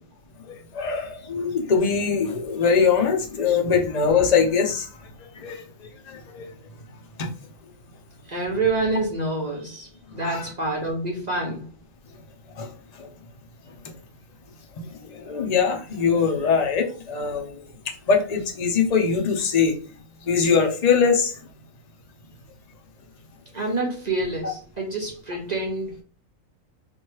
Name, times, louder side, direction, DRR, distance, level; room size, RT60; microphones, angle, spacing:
voice 1, 0.5-4.9 5.3-5.6 6.1-6.5 7.2-7.3 10.2-10.5 12.6-12.7 13.0-13.1 15.0-17.7 18.1-19.7 20.2-21.3, left 5 dB, 40° left, 0.7 m, -22 dB
voice 2, 8.3-11.7 23.5-26.0, right 2 dB, 35° right, 0.9 m, -27 dB
3.2 x 2.7 x 4.5 m
omnidirectional pair, 1.5 m